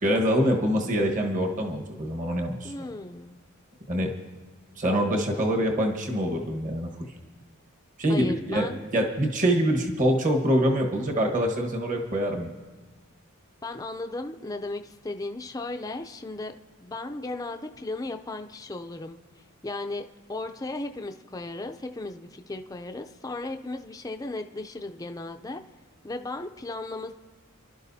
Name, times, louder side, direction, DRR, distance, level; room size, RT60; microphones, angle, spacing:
voice 1, 0.0-2.7 3.9-4.1 4.8-6.9 8.0-12.5, equal, 35° right, 1 dB, 1.4 m, -25 dB
voice 2, 2.6-3.3 8.1-8.8 13.6-16.5 16.8-19.2 19.6-25.6 26.0-27.1, left 2 dB, 15° left, 5 dB, 0.5 m, -35 dB
29.0 x 12.0 x 2.7 m, 1.3 s
head